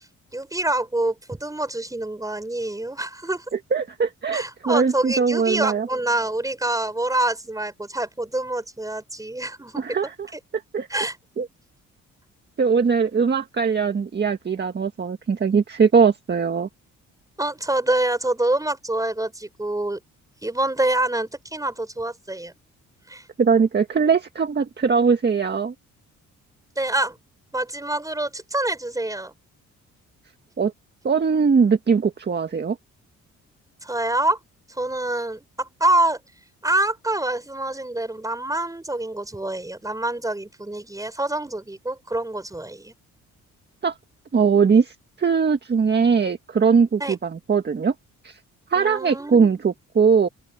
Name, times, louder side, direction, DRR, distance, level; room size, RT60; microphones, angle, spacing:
voice 1, 0.3-3.4 4.3-10.0 10.3-10.4 10.9-11.2 17.4-20.0 20.4-22.5 23.1-23.3 26.8-27.2 27.5-29.3 33.8-34.4 34.8-36.2 36.6-42.9 47.0-47.2 48.8-49.5, right 2 dB, 10° right, 6.2 m, -26 dB
voice 2, 3.7-5.9 9.8-10.1 10.7-10.9 11.4-11.5 12.6-16.7 23.4-25.7 30.6-30.7 31.0-32.8 43.8-43.9 44.3-47.9 48.2-48.4 48.7-50.3, right 5 dB, 35° right, 1.8 m, -20 dB
open air
cardioid pair, 90°, 30 cm